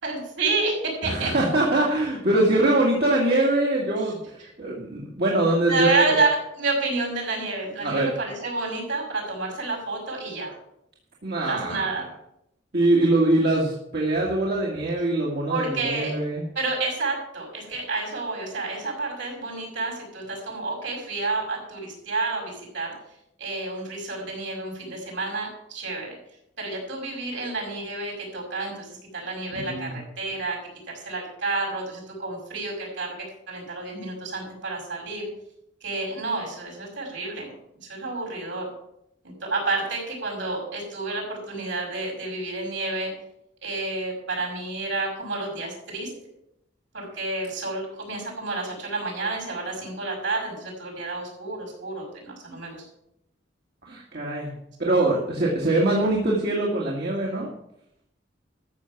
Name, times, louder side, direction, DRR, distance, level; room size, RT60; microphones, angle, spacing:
voice 1, 0.0-1.3 4.0-4.1 4.4-4.5 5.7-10.5 11.4-12.1 15.5-16.2 16.5-22.9 23.4-26.1 26.6-30.6 31.0-33.1 33.5-35.3 35.8-37.5 37.8-38.7 39.2-43.1 43.6-46.1 46.9-52.9, right 3 dB, 80° right, -1 dB, 5.7 m, -29 dB
voice 2, 1.0-6.2 7.8-8.1 11.2-11.9 12.7-16.4 29.5-30.0 53.9-54.5 54.8-57.5, right 2 dB, 60° right, -3 dB, 2.1 m, -23 dB
13.0 x 7.2 x 5.9 m, 0.79 s
head